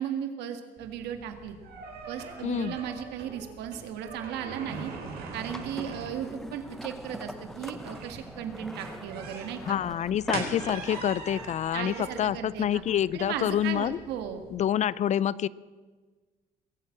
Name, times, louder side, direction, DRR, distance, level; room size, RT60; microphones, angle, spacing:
voice 1, 0.0-1.6 2.1-4.9 5.3-9.8 11.7-12.8 13.1-14.4, right 9 dB, 85° right, 7 dB, 1.8 m, -36 dB
sound 1, 0.8-14.6, right 4 dB, 70° right, 4.5 m, -42 dB
voice 2, 2.4-2.8 9.7-14.0 14.5-15.5, left 10 dB, 45° left, 21 dB, 0.4 m, -27 dB
sound 2, 4.6-11.5, equal, ahead, 0.8 m, -43 dB
21.5 x 8.4 x 7.7 m, 1.4 s
cardioid pair, 110°, 17 cm